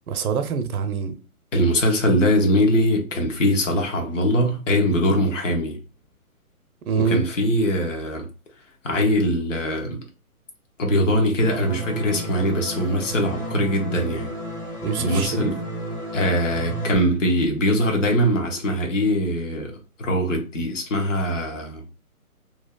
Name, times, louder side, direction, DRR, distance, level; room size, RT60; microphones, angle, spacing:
voice 1, 0.1-1.2 6.9-7.2 14.8-15.6, right 6 dB, 75° right, 0.6 m, -25 dB
voice 2, 1.5-5.8 7.0-8.3 8.8-10.0 10.8-14.3 15.0-15.6 16.1-21.8, equal, 55° left, 0.8 m, -22 dB
sound 1, 11.4-17.0, right 1 dB, 85° left, 1.4 m, -32 dB
2.7 x 2.0 x 2.2 m
hypercardioid pair, 160°, 44 cm